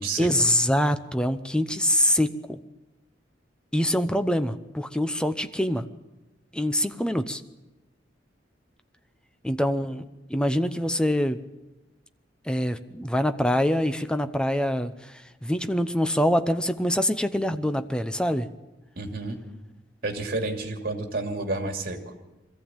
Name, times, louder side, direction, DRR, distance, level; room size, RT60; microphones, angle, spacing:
voice 1, 0.2-2.6 3.7-5.9 6.5-7.4 9.4-11.4 12.5-14.9 15.4-18.5, equal, 5° left, 9 dB, 0.8 m, -24 dB
voice 2, 19.0-19.4 20.0-22.1, right 2 dB, 55° right, 4 dB, 2.6 m, -30 dB
22.5 x 15.0 x 8.9 m, 1.1 s
head